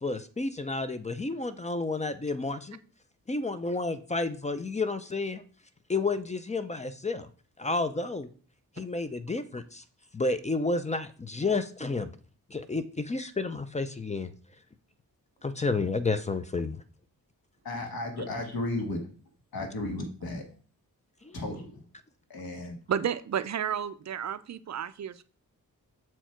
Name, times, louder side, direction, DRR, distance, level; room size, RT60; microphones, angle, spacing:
voice 1, 0.0-2.8 3.3-5.4 5.9-7.3 7.6-8.3 8.8-9.8 10.1-12.1 12.5-14.3 15.4-16.8 21.2-21.4, left 3 dB, 20° left, 11 dB, 0.4 m, -31 dB
voice 2, 17.6-19.0 19.5-20.4 21.3-21.8 22.3-22.8, left 2 dB, 75° left, 3 dB, 1.7 m, -34 dB
voice 3, 22.9-25.2, right 8 dB, 50° right, 13 dB, 0.4 m, -31 dB
7.2 x 4.5 x 4.5 m, 0.41 s
wide cardioid pair, 165°, 37 cm